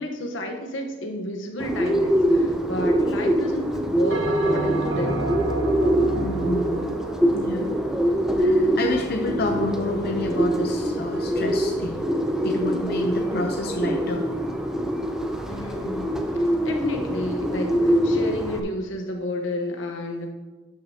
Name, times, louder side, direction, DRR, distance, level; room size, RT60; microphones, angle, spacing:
voice 1, 0.0-5.3 15.5-20.3, left 1 dB, 85° left, 3 dB, 1.0 m, -31 dB
Bird, 1.6-18.6, equal, 5° right, 0.5 m, -24 dB
Bell, 4.1-8.7, right 2 dB, 80° right, 1.3 m, -31 dB
voice 2, 6.1-6.9 7.3-7.8 8.4-12.0 12.4-14.2, left 2 dB, 55° left, 3 dB, 0.6 m, -29 dB
12.0 x 6.5 x 2.8 m, 1.3 s
head